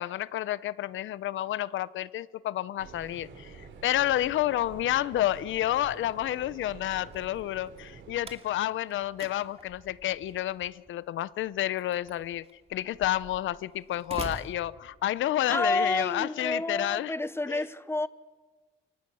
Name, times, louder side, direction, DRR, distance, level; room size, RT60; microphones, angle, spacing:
voice 1, 0.0-12.4 12.7-17.1 17.5-17.6, left 13 dB, 75° left, 0.8 m, -30 dB
sound 1, 2.8-8.1, right 5 dB, 70° right, 4.9 m, -48 dB
Slam, 4.7-15.5, right 4 dB, 30° right, 2.5 m, -48 dB
voice 2, 15.5-18.1, left 2 dB, 10° left, 1.1 m, -29 dB
28.5 x 23.5 x 6.4 m
cardioid pair, 90°, 20 cm